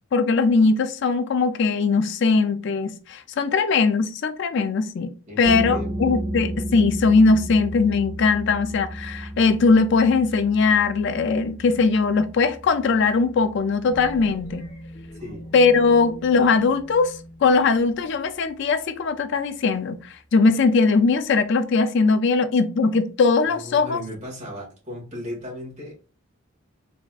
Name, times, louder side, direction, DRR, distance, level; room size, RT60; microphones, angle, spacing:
voice 1, 0.1-5.1 5.4-14.7 15.5-24.0, left 4 dB, 60° left, 0.3 m, -20 dB
voice 2, 5.3-5.9 15.1-15.5 23.5-26.0, left 1 dB, 35° right, 2.0 m, -36 dB
sound 1, 5.4-16.8, right 1 dB, 20° right, 0.7 m, -34 dB
sound 2, 13.9-18.6, equal, 40° left, 0.9 m, -42 dB
4.0 x 3.4 x 2.4 m
head